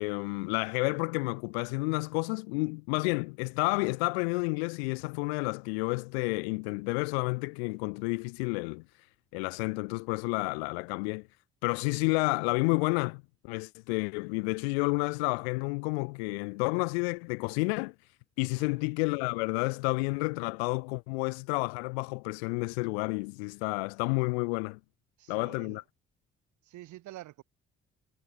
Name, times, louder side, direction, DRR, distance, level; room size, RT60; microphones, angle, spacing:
voice 1, 0.0-8.8 9.3-11.3 11.6-17.9 18.4-24.8 25.3-25.8, left 31 dB, 85° left, 1.4 m, -30 dB
voice 2, 18.6-18.9 25.2-25.8 26.6-27.4, right 16 dB, 70° right, 5.6 m, -48 dB
hypercardioid pair, 50°, 30 cm